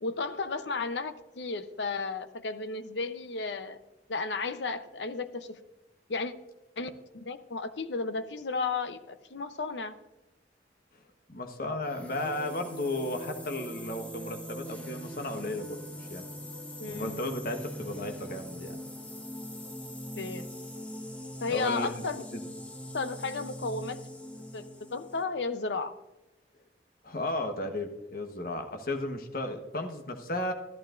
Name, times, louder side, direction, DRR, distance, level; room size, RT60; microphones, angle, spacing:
voice 1, 0.0-3.8 4.1-5.6 6.1-6.3 6.8-10.0 16.8-17.2 20.2-20.5 21.4-22.2 22.9-24.0 24.5-25.9, left 4 dB, 85° left, 10 dB, 0.8 m, -33 dB
voice 2, 11.3-16.3 16.9-18.7 21.5-21.9 22.3-22.4 27.0-30.5, left 1 dB, 55° left, 5 dB, 1.2 m, -34 dB
sound 1, 11.8-25.2, equal, 10° left, 0.8 m, -42 dB
13.5 x 11.5 x 2.5 m, 1.0 s
head